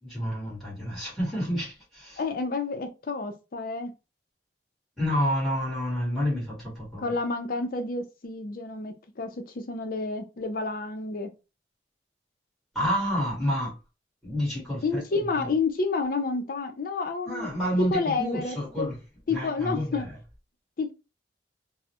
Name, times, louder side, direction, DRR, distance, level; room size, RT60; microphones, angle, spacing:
voice 1, 0.0-2.2 5.0-7.1 12.7-13.7 14.2-15.0 15.4-15.5 17.3-19.0 19.3-20.1, equal, ahead, 1.1 m, -29 dB
voice 2, 2.2-3.9 7.0-11.3 14.8-17.5 17.8-18.9 19.3-20.0 20.8-20.9, left 4 dB, 50° left, 0.5 m, -29 dB
2.3 x 2.0 x 2.8 m
head